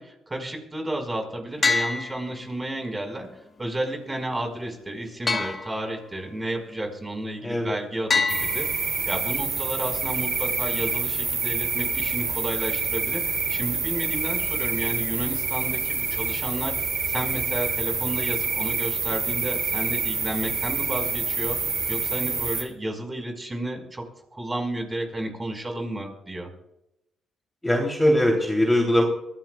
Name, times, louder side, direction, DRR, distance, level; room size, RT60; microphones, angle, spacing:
voice 1, 0.0-3.3 3.6-8.7 9.0-13.2 13.5-16.7 17.1-21.6 21.9-24.0 24.3-26.5, right 1 dB, 20° right, 3 dB, 4.9 m, -32 dB
sound 1, 1.6-2.9 5.3-6.3 8.1-9.3, left 4 dB, 35° left, 1.4 m, -27 dB
voice 2, 7.4-7.7 27.6-29.0, left 1 dB, 10° left, 0 dB, 3.1 m, -21 dB
sound 2, 8.3-22.6, right 5 dB, 45° right, 3.3 m, -27 dB
24.0 x 16.0 x 2.4 m, 0.85 s
cardioid pair, 90°, 0 cm